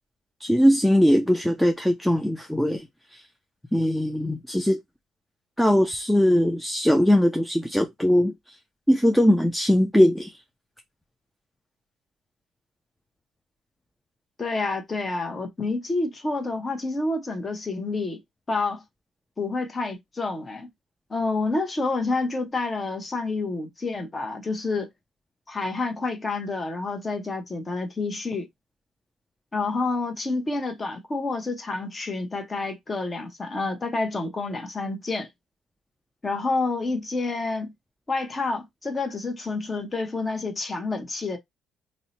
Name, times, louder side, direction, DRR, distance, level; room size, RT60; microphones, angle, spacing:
voice 1, 0.4-2.9 3.1-3.2 3.7-4.8 5.6-8.3 8.9-10.3, equal, 5° left, 0.4 m, -20 dB
voice 2, 14.4-18.2 18.5-18.8 19.4-20.7 21.1-24.9 25.5-28.5 29.5-35.3 36.2-37.7 38.1-41.4, left 3 dB, 25° left, 0.8 m, -28 dB
2.7 x 2.1 x 3.9 m
cardioid pair, 110°, 0 cm